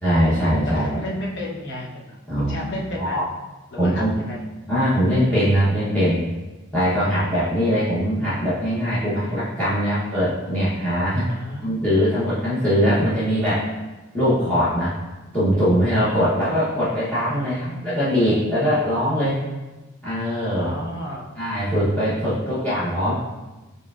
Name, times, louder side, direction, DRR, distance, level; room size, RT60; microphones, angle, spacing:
voice 1, 0.0-1.0 2.3-2.6 2.9-3.2 3.8-4.1 4.7-6.2 6.7-11.3 11.6-13.6 14.1-14.9 15.3-19.4 20.0-20.7 21.4-23.1, equal, 10° left, -13 dB, 0.9 m, -21 dB
voice 2, 0.7-3.2 3.7-4.4 11.2-11.9 17.3-17.9 20.5-21.4 22.0-22.3, equal, 60° left, -3 dB, 0.8 m, -33 dB
4.8 x 3.1 x 2.4 m, 1.2 s
head